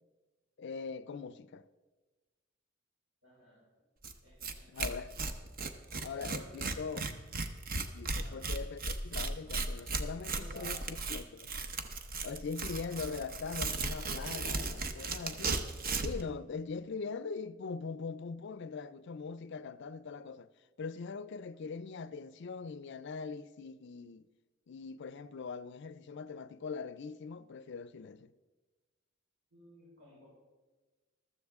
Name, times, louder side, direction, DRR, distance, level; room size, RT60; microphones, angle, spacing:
voice 1, 0.6-1.6 4.7-5.1 6.0-7.2 7.7-11.5 12.2-15.6 16.0-20.5 20.8-24.3 24.7-28.3, left 5 dB, 60° left, 0.4 m, -41 dB
voice 2, 3.2-3.7 4.2-5.0 6.3-6.6 8.1-8.4 9.4-9.7 10.3-10.9 29.5-30.3, equal, 75° right, 4.7 m, -55 dB
Tearing, 4.0-4.1 4.4-4.5 4.8-16.2, right 3 dB, 45° right, 0.8 m, -36 dB
14.5 x 13.0 x 3.6 m
head